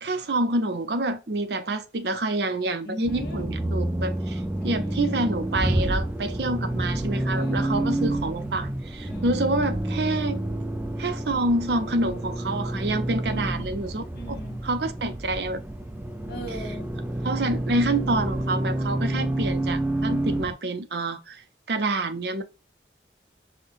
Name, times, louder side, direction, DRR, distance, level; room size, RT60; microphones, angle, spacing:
voice 1, 0.0-10.4 11.0-14.0 14.6-15.6 17.2-22.4, right 2 dB, 65° right, 0.6 m, -27 dB
voice 2, 2.8-3.5 4.6-5.0 7.3-8.1 9.0-9.4 13.3-13.7 14.1-14.6 16.3-16.9, equal, 60° left, 1.1 m, -39 dB
Accelerating revving vroom, 3.1-20.5, right 1 dB, 10° right, 0.3 m, -29 dB
5.4 x 2.2 x 3.3 m
head